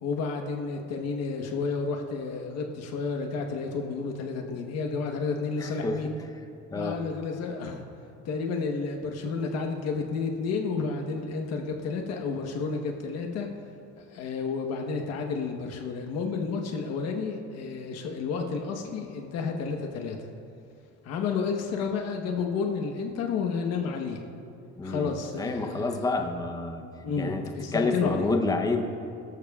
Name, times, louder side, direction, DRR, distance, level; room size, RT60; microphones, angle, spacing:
voice 1, 0.0-6.1 6.7-7.8 8.2-13.5 14.0-20.3 21.0-24.2 24.8-26.1 27.0-28.3, left 5 dB, 60° left, 2 dB, 1.2 m, -31 dB
voice 2, 5.6-6.0 6.7-7.0 24.8-25.1 25.4-26.8 27.2-27.4 27.7-28.8, left 3 dB, 10° left, 4 dB, 0.8 m, -28 dB
22.5 x 14.0 x 2.4 m, 2.5 s
cardioid pair, 170°, 29 cm